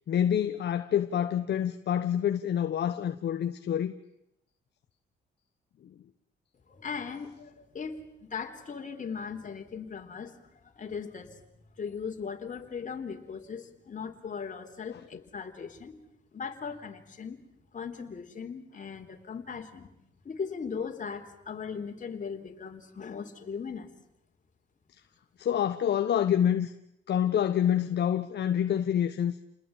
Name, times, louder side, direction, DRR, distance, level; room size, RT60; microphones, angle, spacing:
voice 1, 0.1-3.9 5.8-5.9 25.4-26.7 27.1-29.4, left 9 dB, 60° left, 1.3 m, -27 dB
voice 2, 6.7-11.3 11.8-15.9 16.3-17.4 17.7-19.9 20.2-23.9, left 6 dB, 40° left, 3.9 m, -38 dB
29.5 x 20.5 x 9.0 m
cardioid pair, 90°, 20 cm